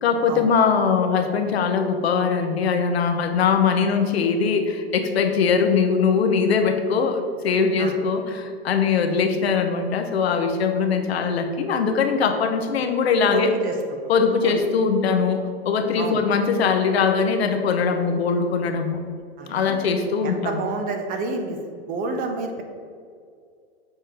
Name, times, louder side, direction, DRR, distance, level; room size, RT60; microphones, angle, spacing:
voice 1, 0.0-13.5 14.1-19.0 19.5-20.6, left 5 dB, 75° left, 6 dB, 1.0 m, -21 dB
voice 2, 13.3-13.8 14.4-14.6 16.0-16.2 19.4-19.8 20.2-21.6 21.9-22.6, right 3 dB, 25° right, 4 dB, 0.8 m, -28 dB
7.3 x 4.3 x 5.0 m, 2.2 s
hypercardioid pair, 130°, 31 cm